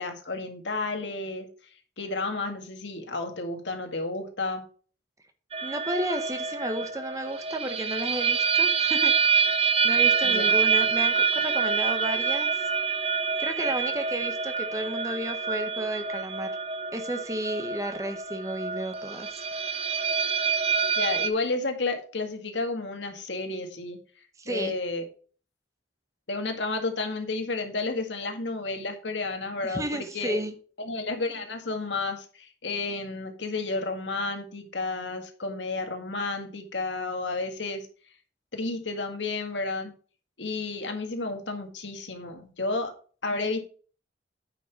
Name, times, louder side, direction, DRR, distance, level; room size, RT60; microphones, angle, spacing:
voice 1, 0.0-1.5 2.0-4.7 10.2-10.5 21.0-24.0 24.5-25.0 26.3-30.4 30.8-37.9 38.5-39.9 40.4-42.9 43.2-43.6, left 3 dB, 85° left, 5 dB, 1.9 m, -31 dB
sound 1, 5.5-21.3, right 6 dB, 35° right, 0.7 m, -26 dB
voice 2, 5.6-12.5 13.4-16.5 16.9-19.4 24.4-24.7 29.7-30.5, right 1 dB, 20° right, 7 dB, 1.1 m, -32 dB
9.2 x 5.7 x 4.8 m, 0.40 s
head